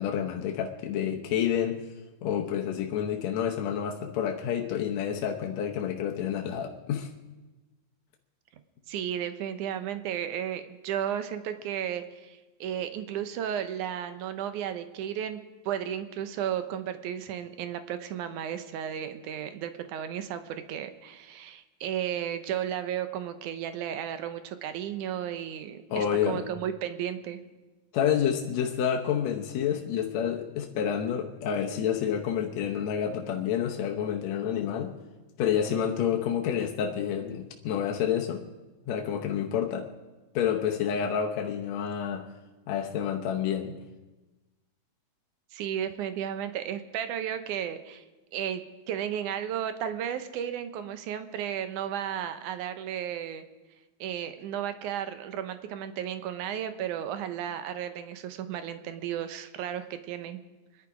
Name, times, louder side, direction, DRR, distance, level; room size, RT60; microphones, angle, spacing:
voice 1, 0.0-1.8 2.2-7.1 25.9-26.5 27.9-34.9 35.4-38.4 38.9-39.9 40.3-42.2 42.7-43.7, left 8 dB, 70° left, 1 dB, 1.8 m, -29 dB
voice 2, 8.9-15.4 15.7-27.4 45.5-48.0 48.3-53.5 54.0-60.4, right 10 dB, 70° right, 10 dB, 2.1 m, -34 dB
24.5 x 11.0 x 4.9 m, 1.2 s
omnidirectional pair, 4.0 m